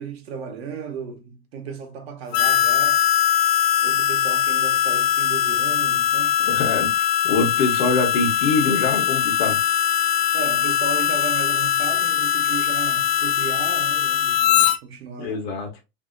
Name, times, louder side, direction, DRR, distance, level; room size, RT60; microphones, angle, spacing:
voice 1, 0.0-3.0 3.8-6.9 10.3-15.4, right 6 dB, 70° right, 1.0 m, -35 dB
Harmonica, 2.3-14.8, left 10 dB, 75° left, 0.6 m, -21 dB
voice 2, 6.5-9.6 15.2-15.7, left 3 dB, 50° left, 0.9 m, -24 dB
3.1 x 2.7 x 2.5 m
supercardioid pair, 170°, 32 cm